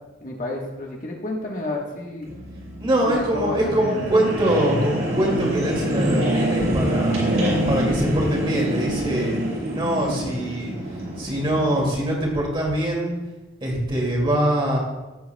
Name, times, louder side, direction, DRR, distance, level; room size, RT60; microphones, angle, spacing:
voice 1, 0.2-2.3 3.0-4.0, left 2 dB, 40° left, -1 dB, 1.4 m, -30 dB
sound 1, 2.2-12.0, equal, 75° right, 3.6 m, -26 dB
voice 2, 2.8-7.3 7.7-9.3 9.7-10.7 11.2-13.2 13.6-14.8, right 1 dB, 25° right, -2 dB, 2.4 m, -23 dB
16.5 x 7.7 x 2.3 m, 1.1 s
head